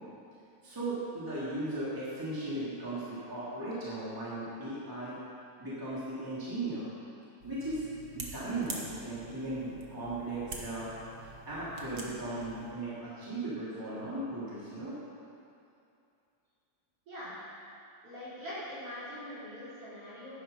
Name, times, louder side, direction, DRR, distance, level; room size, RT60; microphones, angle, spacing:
voice 1, 0.6-5.2 5.6-6.9 7.4-7.9 8.1-10.9 11.5-15.0, right 2 dB, 5° right, -10 dB, 2.7 m, -37 dB
sound 1, 7.4-12.7, right 3 dB, 65° right, 0.7 m, -46 dB
voice 2, 18.0-20.3, left 1 dB, 50° right, -10 dB, 4.3 m, -42 dB
10.5 x 9.6 x 5.3 m, 2.6 s
omnidirectional pair, 3.4 m